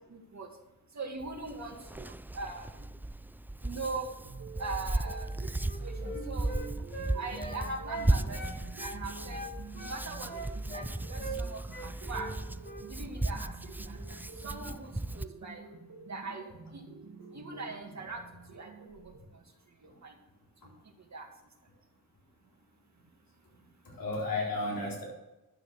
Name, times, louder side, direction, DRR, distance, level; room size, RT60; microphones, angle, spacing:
voice 1, 0.1-0.5 1.0-2.8 3.6-4.1 4.6-5.3 5.8-5.9 6.3-6.6 7.1-8.4 8.8-9.4 9.8-10.3 10.7-10.8 11.1-12.3 12.9-13.5 13.8-14.2 14.4-15.6 16.1-16.8 17.3-18.2 18.5-18.9 20.0-20.1 21.1-21.3, right 3 dB, 55° right, 1 dB, 2.2 m, -40 dB
Hands, 1.2-15.3, right 1 dB, 5° right, 0.3 m, -36 dB
sound 1, 4.2-19.2, right 4 dB, 75° right, 1.9 m, -49 dB
Wind instrument woodwind instrument, 5.5-9.0 9.3-10.9 11.2-11.4 11.7-12.4 12.6-12.9, right 1 dB, 30° left, 2.3 m, -41 dB
voice 2, 6.0-6.8 13.3-13.6 14.0-14.1 23.8-25.0, left 2 dB, 80° left, -4 dB, 4.1 m, -36 dB
11.5 x 6.6 x 6.5 m, 1.0 s
wide cardioid pair, 90°, 33 cm